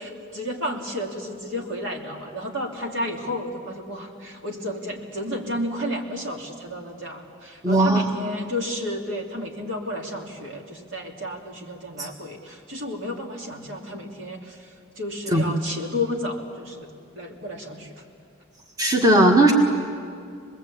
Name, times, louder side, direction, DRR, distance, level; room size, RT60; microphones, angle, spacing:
voice 1, 0.0-16.9 17.1-18.0, left 1 dB, 65° right, 0 dB, 3.0 m, -32 dB
voice 2, 7.6-8.0 12.0-12.1 15.3-15.4 18.8-19.5, right 1 dB, 20° right, 1 dB, 1.6 m, -17 dB
25.5 x 21.0 x 8.6 m, 2.3 s
head